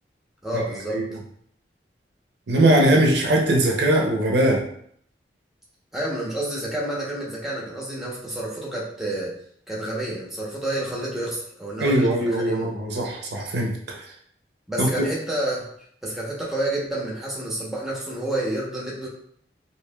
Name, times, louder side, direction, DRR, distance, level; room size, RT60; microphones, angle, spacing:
voice 1, 0.4-1.0 5.9-9.3 9.7-12.7 14.7-15.7 16.0-19.1, right 1 dB, ahead, -4 dB, 0.8 m, -29 dB
voice 2, 2.5-4.6 11.8-14.0 14.8-14.9, right 1 dB, 70° right, 0 dB, 0.6 m, -20 dB
4.6 x 2.7 x 2.2 m, 0.66 s
head